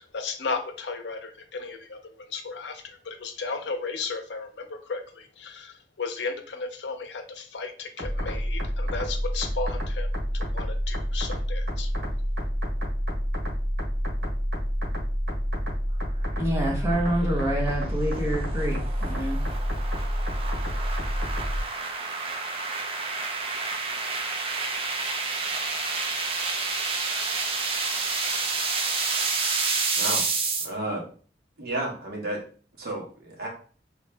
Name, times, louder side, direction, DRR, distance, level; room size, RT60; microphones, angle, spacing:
voice 1, 0.0-11.9, left 4 dB, 75° left, 6 dB, 0.6 m, -35 dB
sound 1, 8.0-21.6, equal, 85° right, 1.4 m, -28 dB
voice 2, 16.4-19.4, right 1 dB, 15° right, -2 dB, 1.0 m, -27 dB
sound 2, 16.7-30.7, right 4 dB, 30° right, 0.5 m, -29 dB
voice 3, 30.0-30.3 30.6-31.0 31.6-32.4 32.8-33.5, right 1 dB, 55° right, -1 dB, 1.1 m, -32 dB
3.1 x 2.8 x 3.4 m, 0.41 s
head